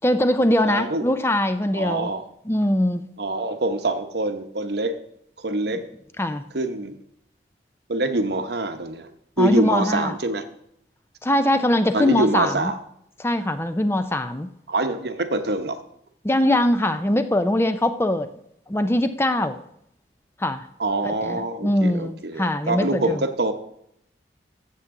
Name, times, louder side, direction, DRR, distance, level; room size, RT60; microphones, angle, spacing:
voice 1, 0.0-2.1 2.5-3.0 6.2-6.4 9.4-10.2 11.2-12.7 13.2-14.5 16.2-18.3 18.7-19.6 20.4-20.7 21.0-23.2, left 1 dB, 15° left, 10 dB, 0.5 m, -22 dB
voice 2, 0.6-1.0 1.7-2.2 3.2-4.9 5.4-5.8 6.5-7.0 7.9-9.1 9.4-10.4 11.9-12.8 14.7-15.8 20.8-23.5, right 2 dB, 70° right, 8 dB, 1.0 m, -25 dB
15.0 x 7.3 x 3.8 m, 0.74 s
head